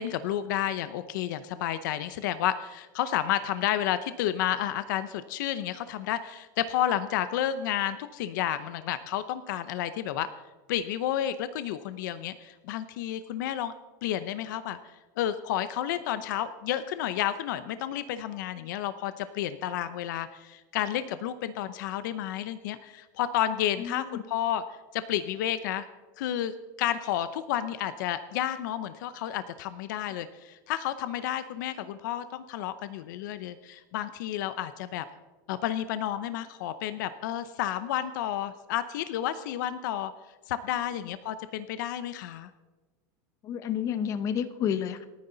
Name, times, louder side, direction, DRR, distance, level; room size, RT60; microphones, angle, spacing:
voice 1, 0.0-10.3 10.7-13.7 14.0-14.8 15.2-24.6 24.9-25.9 26.2-26.5 26.8-35.0 35.5-40.1 40.5-42.5, left 11 dB, 65° left, 12 dB, 0.8 m, -31 dB
voice 2, 23.8-24.2 43.4-45.1, left 8 dB, 30° left, 12 dB, 0.9 m, -30 dB
28.5 x 9.6 x 4.0 m, 1.3 s
supercardioid pair, 170°, 11 cm